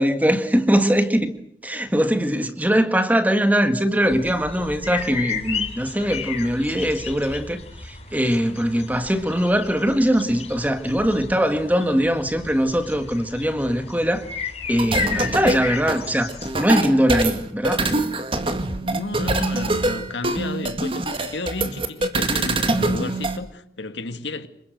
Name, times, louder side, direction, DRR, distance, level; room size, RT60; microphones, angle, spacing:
voice 1, 0.0-1.3 1.6-14.3 14.7-16.3 16.5-17.9, equal, 10° right, 1.7 m, -21 dB
sound 1, 4.1-16.5, left 5 dB, 35° left, 5.9 m, -33 dB
sound 2, 14.6-23.4, right 2 dB, 30° right, 2.0 m, -24 dB
voice 2, 18.8-24.5, left 2 dB, 85° left, 2.2 m, -32 dB
27.0 x 23.0 x 7.8 m
head